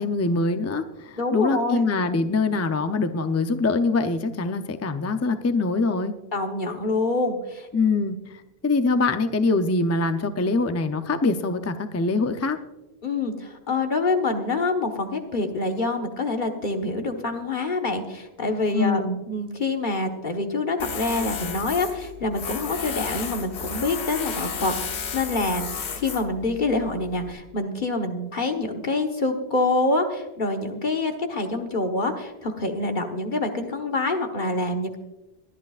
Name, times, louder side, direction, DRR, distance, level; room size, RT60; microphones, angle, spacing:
voice 1, 0.0-6.1 7.7-8.2 8.6-12.6 18.7-19.2, left 3 dB, 20° left, 8 dB, 0.4 m, -23 dB
voice 2, 1.2-1.8 6.3-7.7 13.0-35.0, left 2 dB, 50° left, 4 dB, 1.4 m, -26 dB
Tools, 20.8-27.3, left 6 dB, 90° left, 1.2 m, -33 dB
22.0 x 11.0 x 2.4 m, 1.0 s
omnidirectional pair, 1.1 m